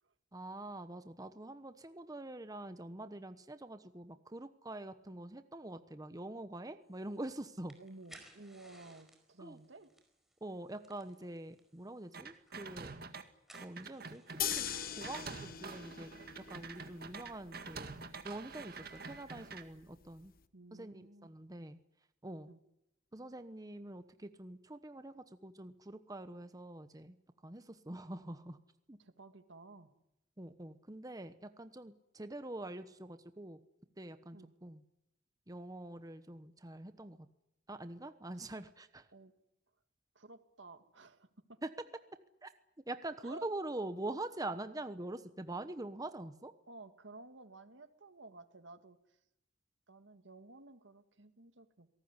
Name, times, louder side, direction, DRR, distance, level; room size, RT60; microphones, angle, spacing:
voice 1, 0.3-7.8 9.4-9.6 10.4-12.9 13.6-14.7 15.0-16.1 16.4-18.0 18.2-20.3 20.7-21.8 22.2-22.5 23.1-27.2 27.4-28.6 28.9-29.0 30.4-33.6 34.0-34.8 35.5-37.3 37.7-39.1 41.6-41.7 42.4-42.5 42.9-46.5, right 2 dB, 20° right, 10 dB, 1.1 m, -45 dB
sound 1, 6.9-19.3, right 1 dB, ahead, 4.8 m, -65 dB
voice 2, 7.8-9.9 20.5-21.3 22.5-22.6 29.0-29.9 34.3-34.6 38.3-38.5 39.1-39.3 40.2-41.6 43.2-43.5 46.7-49.0 49.9-51.9, right 2 dB, 75° right, 9 dB, 2.0 m, -54 dB
sound 2, 12.1-13.2 13.5-19.6, right 4 dB, 55° right, 2.0 m, -47 dB
sound 3, 14.4-20.4, left 10 dB, 50° left, 1.2 m, -43 dB
26.5 x 18.5 x 9.8 m, 0.84 s
head